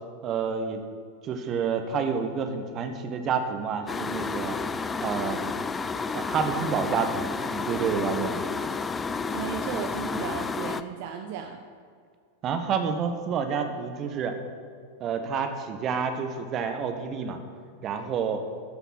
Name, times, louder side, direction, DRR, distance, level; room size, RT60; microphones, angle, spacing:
voice 1, 0.2-0.8 1.2-4.6 5.0-5.4 6.1-8.4 12.4-14.4 15.0-17.4 17.8-18.4, right 6 dB, 30° right, 6 dB, 1.2 m, -29 dB
sound 1, 3.9-10.8, left 4 dB, 15° left, 0.4 m, -31 dB
voice 2, 9.3-11.6, right 8 dB, 50° right, 4 dB, 0.7 m, -35 dB
12.5 x 5.8 x 6.2 m, 2.2 s
figure-of-eight pair, 90°, 0 cm